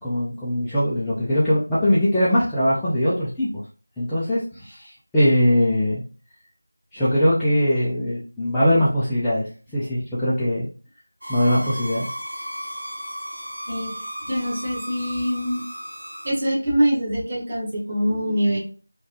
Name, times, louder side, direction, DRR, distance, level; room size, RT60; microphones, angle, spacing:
voice 1, 0.0-3.6 4.0-6.0 6.9-10.7 11.3-12.1, left 1 dB, 5° left, -14 dB, 0.4 m, -21 dB
sound 1, 11.2-16.3, equal, 65° right, 1.2 m, -34 dB
voice 2, 13.7-14.0 14.3-15.7 16.2-18.6, equal, 30° right, -4 dB, 1.3 m, -24 dB
3.3 x 2.3 x 2.8 m, 0.36 s
figure-of-eight pair, 170°, 0 cm